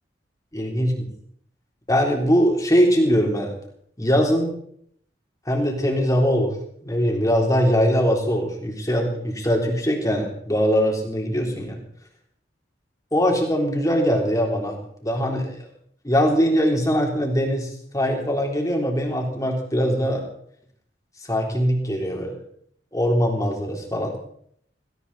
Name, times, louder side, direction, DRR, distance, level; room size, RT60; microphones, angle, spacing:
voice 1, 0.5-1.1 1.9-3.5 4.0-4.5 5.5-6.5 6.8-11.8 13.1-15.7 16.0-20.2 21.3-22.4 22.9-24.1, equal, 20° left, 1 dB, 3.9 m, -21 dB
18.0 x 17.0 x 4.3 m, 0.65 s
head